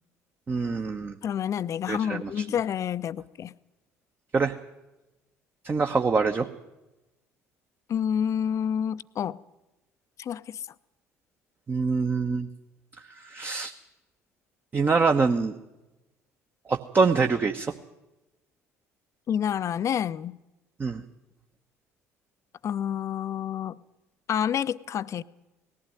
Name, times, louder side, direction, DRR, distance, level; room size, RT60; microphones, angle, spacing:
voice 1, 0.5-1.2 1.9-2.4 4.3-4.5 5.6-6.5 11.7-12.5 13.1-13.7 14.7-15.5 16.7-17.7 20.8-21.0, right 4 dB, 25° right, 1.0 m, -25 dB
voice 2, 1.2-3.5 7.9-9.4 10.2-10.6 19.3-20.4 22.6-23.8 24.3-25.2, left 9 dB, 40° left, 0.6 m, -28 dB
19.0 x 15.0 x 9.0 m
figure-of-eight pair, 55°, 8 cm